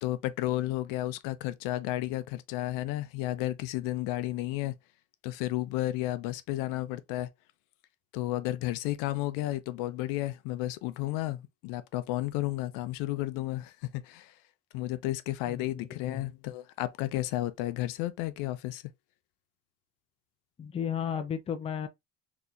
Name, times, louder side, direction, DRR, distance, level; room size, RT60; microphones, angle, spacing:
voice 1, 0.0-4.7 5.2-7.3 8.1-14.3 14.7-18.8, left 16 dB, 80° left, 0.5 m, -32 dB
voice 2, 15.5-16.3 20.6-21.9, left 8 dB, 20° left, 0.4 m, -34 dB
3.9 x 2.8 x 2.3 m
cardioid pair, 125°, 32 cm